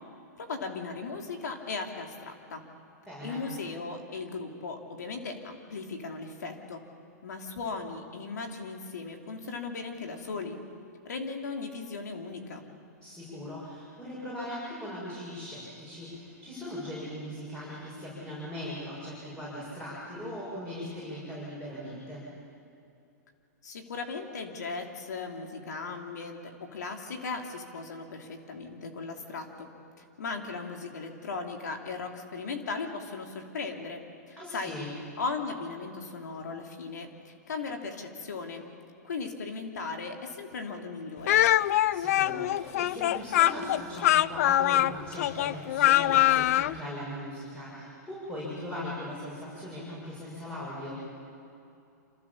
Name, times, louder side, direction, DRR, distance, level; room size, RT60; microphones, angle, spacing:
voice 1, 0.4-2.6 3.2-6.8 7.2-10.6 11.0-12.6 23.6-29.7 30.0-34.7 35.2-38.6 39.0-41.4, left 4 dB, 85° left, 3 dB, 2.8 m, -37 dB
voice 2, 3.1-3.5 13.0-22.3 34.4-34.9 41.9-51.0, left 1 dB, 10° left, -8 dB, 6.9 m, -39 dB
Speech, 41.3-46.7, left 13 dB, 60° left, 0.5 m, -23 dB
27.0 x 14.5 x 7.3 m, 2.7 s
hypercardioid pair, 130°, 9 cm